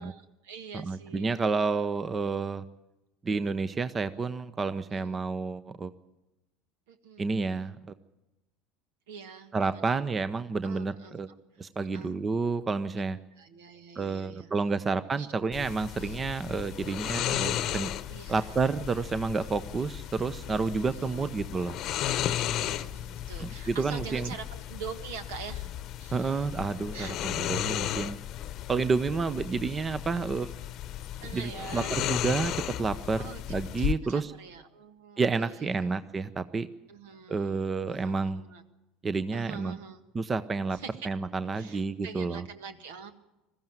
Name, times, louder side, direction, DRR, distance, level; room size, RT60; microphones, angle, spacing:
voice 1, 0.0-1.8 4.9-5.2 6.9-7.3 9.1-10.1 10.6-12.1 13.3-14.8 15.2-15.3 15.9-16.3 18.1-18.6 20.3-21.4 22.4-25.7 26.0-26.6 26.9-27.1 31.2-32.1 32.4-32.5 33.2-33.4 33.8-35.9 36.9-38.6 39.3-40.0 40.7-41.1 41.5-43.1, right 6 dB, 75° right, 9 dB, 1.6 m, -45 dB
voice 2, 0.7-2.7 3.2-5.9 7.2-7.9 9.5-11.3 11.6-13.2 14.0-17.9 18.3-21.8 23.4-24.3 26.1-28.2 28.7-30.5 31.3-33.2 33.5-34.3 35.2-36.7 37.3-38.4 39.0-39.8 40.1-40.8 41.0-42.4, right 4 dB, 25° right, 13 dB, 0.8 m, -30 dB
sound 1, 15.5-33.9, left 12 dB, 55° left, 0.9 m, -35 dB
21.0 x 14.5 x 9.3 m, 0.99 s
hypercardioid pair, 75°, 0 cm